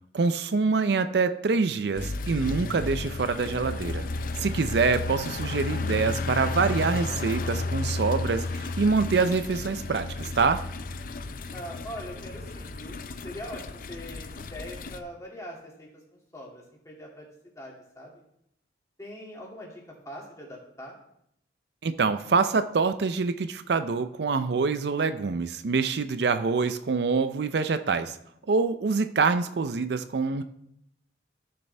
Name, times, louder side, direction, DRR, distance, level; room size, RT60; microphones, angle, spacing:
voice 1, 0.1-4.1 4.4-10.6 21.8-28.2 28.5-30.4, right 4 dB, 70° right, 10 dB, 0.5 m, -25 dB
sound 1, 1.9-15.0, left 3 dB, 50° left, 0.5 m, -33 dB
voice 2, 11.5-13.0 13.2-17.3 17.6-18.1 19.0-20.9, equal, 20° left, -3 dB, 2.4 m, -42 dB
13.5 x 6.8 x 3.3 m, 0.75 s
head